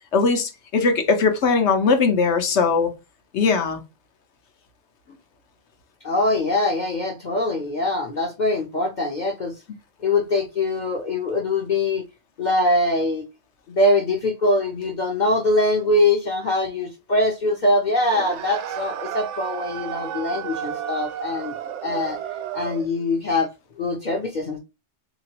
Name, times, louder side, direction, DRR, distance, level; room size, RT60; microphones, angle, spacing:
voice 1, 0.1-2.9 3.3-3.8, left 4 dB, 70° left, 1.1 m, -20 dB
voice 2, 6.0-9.5 10.0-12.0 12.4-13.2 13.7-21.5 21.8-22.2 22.5-23.5 23.8-24.6, left 2 dB, 45° left, 0.8 m, -23 dB
sound 1, 18.1-22.9, right 10 dB, 80° right, 0.9 m, -32 dB
3.7 x 2.9 x 2.9 m
omnidirectional pair, 1.2 m